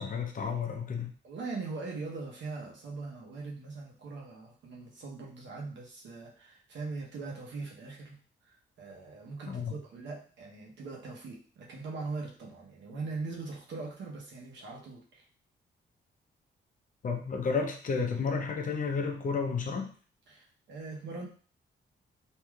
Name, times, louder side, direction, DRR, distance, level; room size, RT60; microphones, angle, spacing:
voice 1, 0.0-1.1 9.5-9.7 17.0-19.9, left 5 dB, 45° left, 3 dB, 0.6 m, -31 dB
voice 2, 1.2-8.2 8.4-15.3 20.3-21.3, right 3 dB, 80° right, -2 dB, 0.9 m, -41 dB
3.2 x 2.7 x 2.3 m, 0.41 s
cardioid pair, 125°, 19 cm